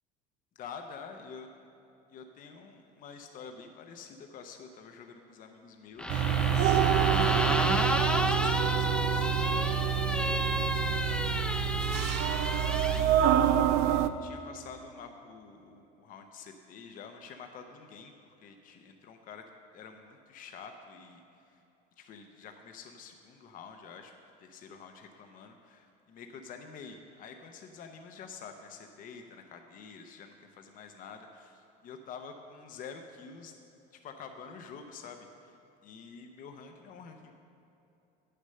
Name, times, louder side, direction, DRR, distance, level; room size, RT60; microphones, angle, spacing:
voice 1, 0.6-1.5 2.1-6.2 6.9-12.5 12.9-19.5 19.7-21.2 21.5-21.6 22.0-24.1 24.4-33.5 34.0-35.6 35.8-37.3, left 5 dB, 45° left, 5 dB, 0.7 m, -48 dB
sound 1, 6.0-13.0, left 1 dB, 5° left, 0.4 m, -32 dB
sound 2, 6.1-14.1, right 9 dB, 65° right, 0.4 m, -27 dB
8.8 x 6.6 x 6.6 m, 2.8 s
cardioid pair, 130°, 19 cm